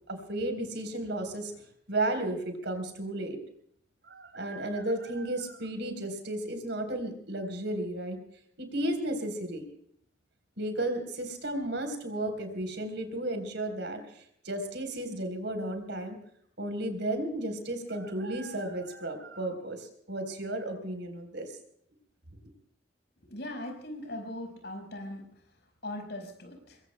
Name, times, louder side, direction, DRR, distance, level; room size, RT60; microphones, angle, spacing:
voice 1, 0.1-1.5 1.9-3.4 4.1-8.2 8.6-9.6 10.6-16.2 16.6-21.5, right 1 dB, 65° right, 7 dB, 3.8 m, -33 dB
voice 2, 23.3-25.2 25.8-26.8, left 1 dB, 60° left, 5 dB, 4.8 m, -39 dB
26.0 x 22.5 x 2.2 m, 0.66 s
head